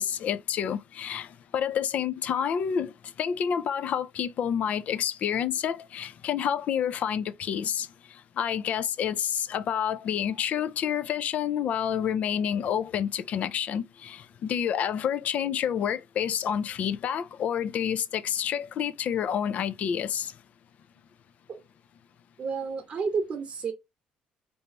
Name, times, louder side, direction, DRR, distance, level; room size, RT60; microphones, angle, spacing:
voice 1, 0.0-2.9 3.2-7.9 8.4-20.3, left 8 dB, 55° left, 0.4 m, -29 dB
voice 2, 22.4-23.7, right 5 dB, 45° right, 0.8 m, -31 dB
3.4 x 2.6 x 2.9 m
cardioid pair, 105°, 3 cm